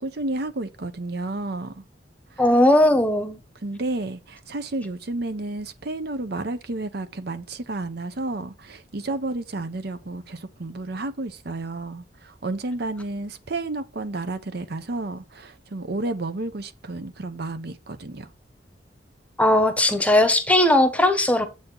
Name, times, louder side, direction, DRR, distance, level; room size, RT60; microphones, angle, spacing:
voice 1, 0.0-1.8 2.3-2.4 2.9-3.0 3.6-18.3, right 2 dB, 65° right, 0.8 m, -31 dB
voice 2, 2.4-3.4 19.4-21.5, left 1 dB, 10° left, 0.9 m, -18 dB
8.0 x 4.2 x 5.4 m
head